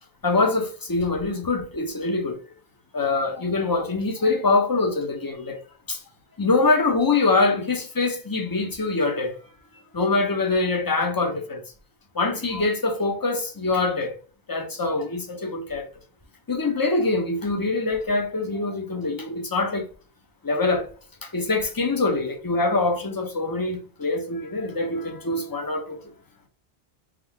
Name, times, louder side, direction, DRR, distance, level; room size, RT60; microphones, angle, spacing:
voice 1, 0.2-2.4 2.9-5.6 5.9-6.0 6.4-9.4 9.9-11.6 12.1-14.1 14.5-15.9 16.5-19.9 20.4-20.9 21.2-26.0, left 3 dB, 25° left, 0.7 m, -24 dB
3.7 x 2.7 x 4.5 m
omnidirectional pair, 1.1 m